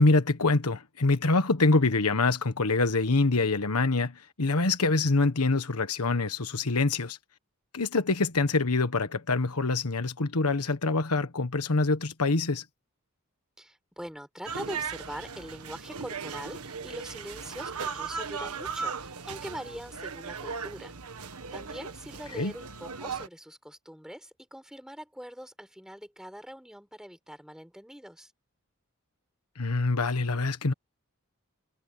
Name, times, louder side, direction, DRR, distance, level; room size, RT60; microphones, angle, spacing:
voice 1, 0.0-7.2 7.7-12.6 22.4-22.5 29.6-30.7, left 3 dB, 85° left, 1.4 m, -25 dB
voice 2, 13.6-21.0 21.2-28.3, equal, 5° right, 6.7 m, -43 dB
sound 1, 14.5-23.3, right 5 dB, 85° right, 1.6 m, -37 dB
head